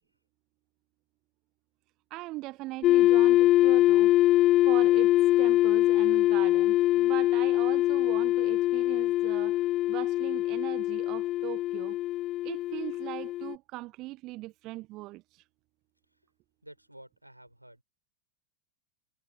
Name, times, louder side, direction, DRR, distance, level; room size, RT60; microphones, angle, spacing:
voice 1, 2.1-4.1 4.6-5.1 5.4-12.0 12.4-15.5, right 20 dB, 40° right, 1.5 m, -40 dB
sound 1, 2.8-13.5, left 15 dB, 35° left, 0.3 m, -23 dB
voice 2, 16.6-17.8, right 1 dB, 90° right, 6.1 m, -51 dB
figure-of-eight pair, 90°, 0 cm